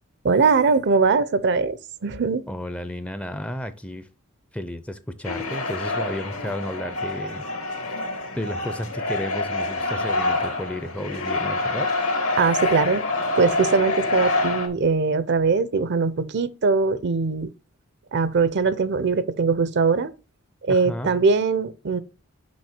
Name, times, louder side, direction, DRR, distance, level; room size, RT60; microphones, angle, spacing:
voice 1, 0.2-2.4 12.4-13.1 13.4-17.5 18.1-20.1 20.7-22.0, right 4 dB, 55° right, 0.6 m, -21 dB
voice 2, 2.5-4.1 4.5-7.5 8.3-11.9 20.7-21.1, equal, 5° left, 0.5 m, -32 dB
sound 1, 5.2-14.7, left 2 dB, 70° left, 1.8 m, -26 dB
6.3 x 5.4 x 4.4 m
head